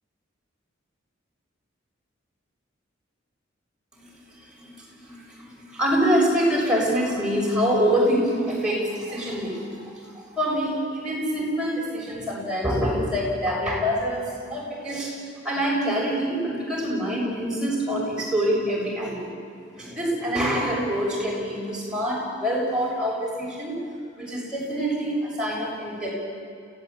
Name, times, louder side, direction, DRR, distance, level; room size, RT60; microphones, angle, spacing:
voice 1, 5.1-15.2 15.4-19.3 19.7-23.7 24.2-26.1, equal, 5° right, -4 dB, 6.9 m, -25 dB
28.5 x 16.0 x 8.7 m, 2.3 s
head